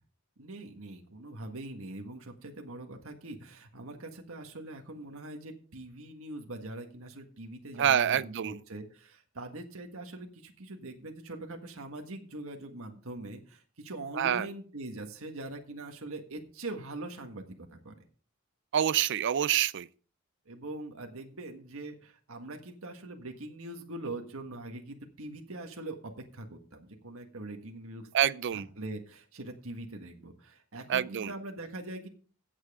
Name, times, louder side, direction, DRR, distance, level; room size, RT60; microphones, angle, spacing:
voice 1, 0.4-17.5 17.7-17.9 20.5-28.1 28.5-32.1, right 2 dB, 80° right, 1.7 m, -42 dB
voice 2, 7.8-8.6 14.2-14.5 18.7-19.9 28.1-28.7 30.9-31.3, right 9 dB, 60° right, 0.4 m, -26 dB
15.5 x 7.5 x 3.6 m
head